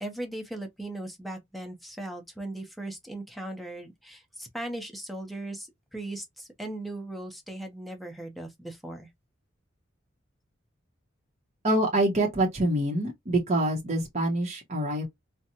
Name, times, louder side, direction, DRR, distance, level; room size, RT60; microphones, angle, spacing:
voice 1, 0.0-9.1, right 1 dB, ahead, 0.8 m, -38 dB
voice 2, 11.6-15.1, right 1 dB, 35° right, 0.9 m, -26 dB
4.0 x 2.2 x 2.9 m
head